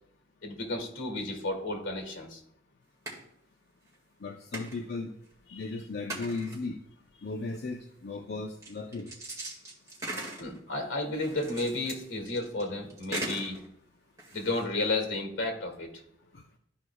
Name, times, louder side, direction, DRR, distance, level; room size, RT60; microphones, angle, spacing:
voice 1, 0.4-2.4 5.5-5.6 10.4-13.6 14.3-15.9, left 2 dB, 75° left, 3 dB, 2.0 m, -32 dB
sound 1, 3.1-3.2 3.9-4.0 4.5-4.8 5.3-5.4 6.1-6.7 7.5-7.6 8.6-10.6 11.1-13.7 14.2-14.6, right 2 dB, 15° right, 1.9 m, -39 dB
voice 2, 4.2-5.1 5.5-6.8 7.2-9.1, left 3 dB, 55° left, 2 dB, 0.6 m, -36 dB
13.5 x 4.8 x 2.3 m, 0.70 s
head